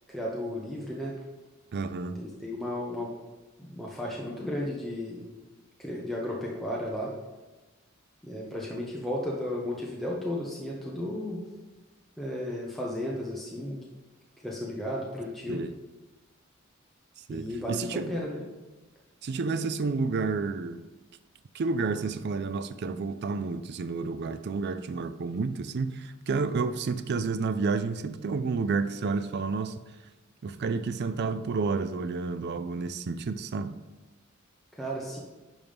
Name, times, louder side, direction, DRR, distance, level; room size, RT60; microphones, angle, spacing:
voice 1, 0.1-1.1 2.1-3.1 3.6-5.2 5.8-7.1 8.2-11.4 12.2-13.8 14.4-15.6 17.3-18.4 34.7-35.2, left 1 dB, ahead, -4 dB, 0.9 m, -34 dB
voice 2, 1.7-2.2 15.5-15.7 17.3-18.1 19.2-20.8 21.5-29.8 30.4-33.8, right 4 dB, 50° right, 12 dB, 0.4 m, -30 dB
10.5 x 5.5 x 3.5 m, 1.2 s
head